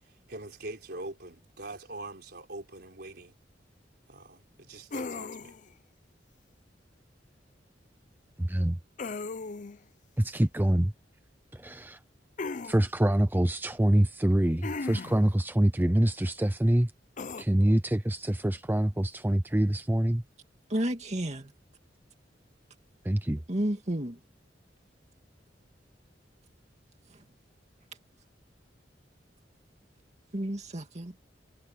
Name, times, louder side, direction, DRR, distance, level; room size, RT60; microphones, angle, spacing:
voice 1, 0.0-3.4 4.1-5.6, right 2 dB, 65° right, 4.6 m, -43 dB
sound 1, 4.9-5.7 9.0-9.8 12.4-12.8 14.6-15.3 17.2-17.4, left 3 dB, 45° left, 0.6 m, -36 dB
voice 2, 8.4-8.8 10.2-10.9 11.6-12.0 12.7-16.9 17.4-20.2 23.0-23.4, right 1 dB, 10° right, 0.7 m, -25 dB
voice 3, 20.7-21.5 23.5-24.2 30.3-31.1, right 1 dB, 40° right, 2.3 m, -31 dB
head